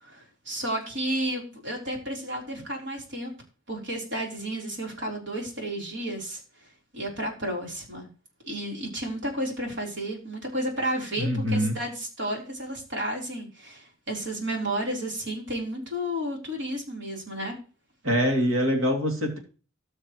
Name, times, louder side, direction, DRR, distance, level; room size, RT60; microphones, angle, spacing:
voice 1, 0.0-3.3 3.7-6.4 6.9-8.1 8.4-17.6, right 1 dB, 55° right, -1 dB, 3.9 m, -32 dB
voice 2, 11.2-11.7 18.0-19.4, equal, 80° right, 1 dB, 2.7 m, -24 dB
19.0 x 6.5 x 3.2 m, 0.36 s
head